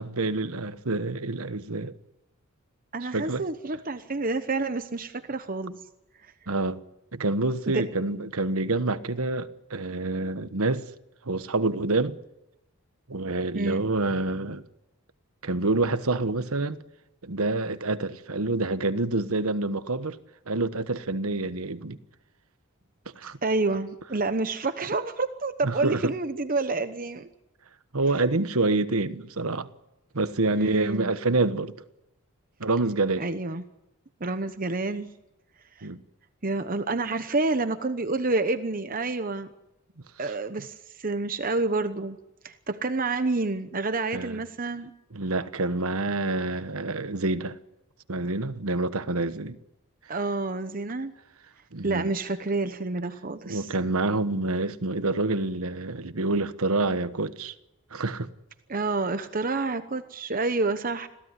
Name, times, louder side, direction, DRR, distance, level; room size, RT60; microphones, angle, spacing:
voice 1, 0.0-1.9 3.1-3.4 6.5-6.8 7.1-10.9 11.2-12.2 13.1-14.6 15.4-16.8 17.2-20.2 20.5-22.0 23.2-23.4 25.6-26.1 27.9-29.7 30.1-31.7 32.6-33.2 35.8-36.0 44.1-44.4 45.1-47.6 48.1-49.6 51.7-52.1 53.4-57.5 57.9-58.3, right 2 dB, 75° right, 1.2 m, -27 dB
voice 2, 2.9-5.9 7.7-7.9 13.5-13.8 23.4-27.3 28.2-28.3 30.5-31.2 33.2-33.6 34.2-35.1 35.8-35.9 36.4-39.5 40.2-42.2 42.4-44.9 50.1-51.1 51.8-53.7 58.7-61.1, right 3 dB, 40° right, 0.9 m, -28 dB
26.5 x 16.5 x 9.8 m
head